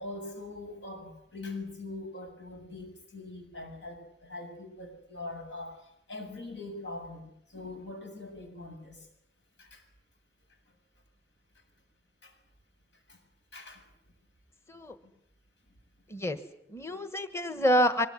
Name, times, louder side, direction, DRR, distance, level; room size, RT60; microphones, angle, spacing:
voice 1, 0.0-9.1 9.6-9.8 12.2-12.3 13.1-13.2 13.5-13.8 16.9-17.0, left 2 dB, 85° left, 4 dB, 7.7 m, -42 dB
voice 2, 16.7-18.1, equal, 15° left, 10 dB, 1.4 m, -27 dB
25.0 x 22.0 x 9.9 m, 0.73 s
head